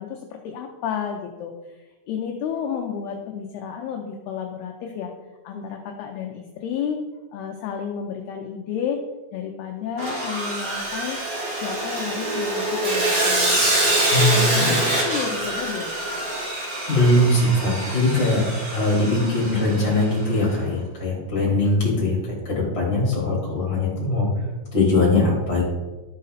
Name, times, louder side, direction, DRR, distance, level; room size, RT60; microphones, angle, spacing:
voice 1, 0.0-5.1 5.4-7.0 7.3-9.0 9.3-11.2 11.6-14.0 14.3-16.0, left 7 dB, 80° left, 2 dB, 2.4 m, -31 dB
Sawing, 10.0-20.2, right 1 dB, 45° right, 2.4 m, -25 dB
voice 2, 14.1-14.8 16.9-22.2 22.4-24.3 24.7-25.7, left 2 dB, 15° left, -4 dB, 2.8 m, -21 dB
13.0 x 5.3 x 4.1 m, 1.2 s
omnidirectional pair, 5.1 m